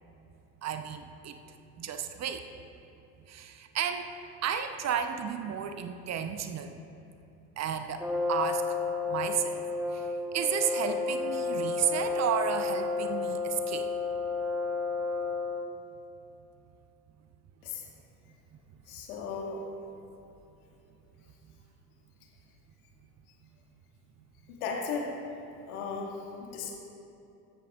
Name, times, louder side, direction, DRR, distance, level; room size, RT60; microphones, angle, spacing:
voice 1, 0.6-1.4 1.8-2.4 3.3-4.1 4.4-6.8 7.6-8.8 9.1-13.9, right 8 dB, 35° right, 8 dB, 0.8 m, -33 dB
Brass instrument, 8.0-15.8, left 4 dB, ahead, 1.0 m, -31 dB
voice 2, 18.9-19.6 24.5-25.1 25.7-26.7, left 5 dB, 65° left, -1 dB, 2.2 m, -36 dB
23.5 x 10.0 x 2.5 m, 2.8 s
figure-of-eight pair, 60°, 47 cm